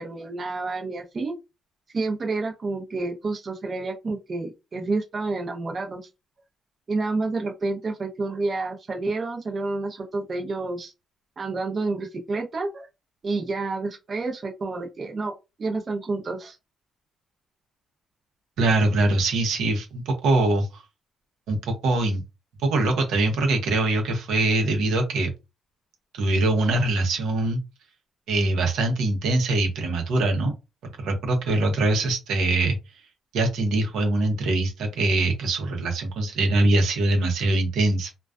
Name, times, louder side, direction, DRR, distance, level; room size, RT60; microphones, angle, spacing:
voice 1, 0.0-1.3 1.9-6.0 6.9-10.9 11.4-12.9 13.2-15.3 15.6-16.6, right 3 dB, 40° right, 0.6 m, -29 dB
voice 2, 18.6-20.8 21.5-22.2 22.6-25.3 26.1-27.6 28.3-30.5 31.0-32.8 33.3-38.1, right 2 dB, 80° right, 0.7 m, -23 dB
2.3 x 2.2 x 2.3 m
cardioid pair, 90°, 0 cm